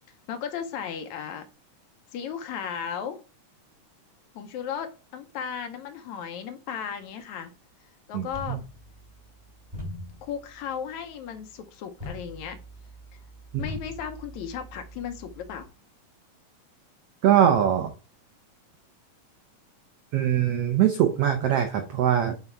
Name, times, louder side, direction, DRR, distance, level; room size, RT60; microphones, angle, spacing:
voice 1, 0.3-1.5 2.1-3.2 4.4-7.5 8.1-8.6 10.2-12.6 13.1-13.2 13.6-15.7, left 8 dB, 75° left, 7 dB, 1.9 m, -35 dB
voice 2, 8.1-8.6 17.2-17.9 20.1-22.5, right 10 dB, 85° right, 5 dB, 1.3 m, -22 dB
sound 1, 8.3-15.7, left 1 dB, 15° right, 2.5 m, -43 dB
8.0 x 4.0 x 4.5 m, 0.33 s
omnidirectional pair, 3.8 m